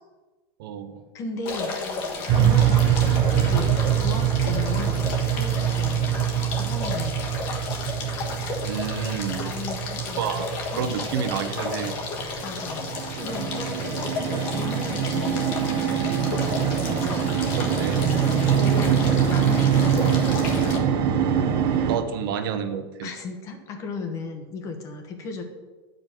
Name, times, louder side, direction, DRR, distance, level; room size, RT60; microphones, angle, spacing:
voice 1, 0.6-1.0 2.6-2.8 8.6-9.5 10.0-12.0 17.6-18.0 21.9-23.1, right 8 dB, 70° right, 7 dB, 0.9 m, -29 dB
voice 2, 1.1-1.8 2.4-7.2 9.4-11.3 12.4-15.5 16.8-17.2 18.6-20.2 23.0-25.4, left 4 dB, 25° left, 5 dB, 1.0 m, -36 dB
sound 1, 1.5-20.8, left 3 dB, 40° left, 1.3 m, -33 dB
sound 2, 2.3-22.0, right 9 dB, 35° right, 0.7 m, -24 dB
9.3 x 5.2 x 6.0 m, 1.3 s
supercardioid pair, 175°, 12 cm